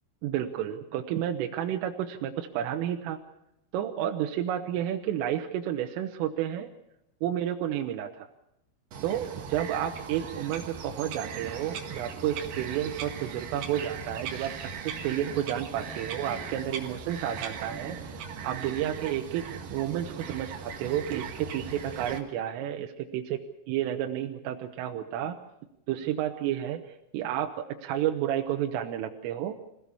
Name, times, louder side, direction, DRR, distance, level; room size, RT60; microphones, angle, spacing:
voice 1, 0.2-3.2 3.7-6.7 7.2-8.3 9.0-18.1 18.4-25.4 25.9-26.8 27.1-27.5 27.8-29.6, right 11 dB, 80° right, 4 dB, 3.6 m, -31 dB
Bird vocalization bird call bird song, 8.9-22.2, right 6 dB, 55° right, 2.7 m, -39 dB
26.0 x 17.0 x 7.0 m, 0.83 s
omnidirectional pair, 5.9 m